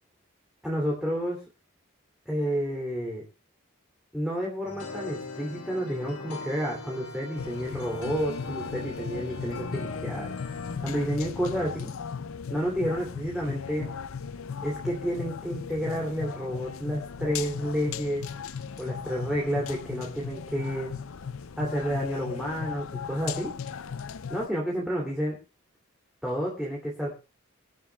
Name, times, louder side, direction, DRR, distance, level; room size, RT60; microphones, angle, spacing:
voice 1, 0.6-1.4 2.3-3.2 4.1-10.3 10.8-11.9 12.5-13.9 14.6-18.2 18.8-20.9 21.6-23.5 24.3-25.4 26.2-27.1, equal, 5° right, -3 dB, 2.7 m, -30 dB
sound 1, 4.6-10.8, left 3 dB, 85° left, 5.1 m, -40 dB
sound 2, 7.4-24.5, left 6 dB, 70° left, 0.5 m, -37 dB
24.0 x 11.5 x 2.3 m, 0.31 s
head